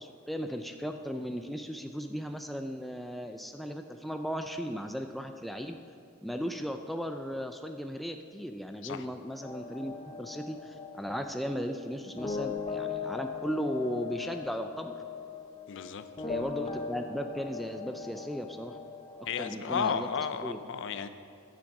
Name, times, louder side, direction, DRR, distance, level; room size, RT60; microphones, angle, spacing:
voice 1, 0.0-5.8 6.2-14.9 16.3-18.8 19.4-20.1 20.4-20.6, equal, ahead, 5 dB, 0.3 m, -36 dB
sound 1, 9.4-19.5, left 5 dB, 25° left, 0.7 m, -39 dB
voice 2, 15.7-16.0 19.3-21.1, left 6 dB, 60° left, 11 dB, 0.5 m, -33 dB
10.5 x 7.6 x 5.3 m, 2.5 s
head